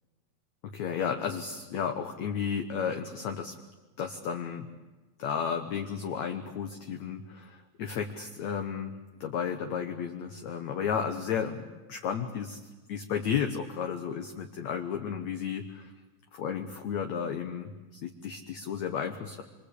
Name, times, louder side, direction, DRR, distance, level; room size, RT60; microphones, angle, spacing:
voice 1, 0.6-3.5 4.0-4.7 5.2-8.9 9.2-12.6 12.9-15.9 16.3-17.7 18.0-19.4, left 7 dB, 60° left, 5 dB, 2.0 m, -33 dB
27.0 x 25.0 x 8.4 m, 1.2 s
omnidirectional pair, 4.5 m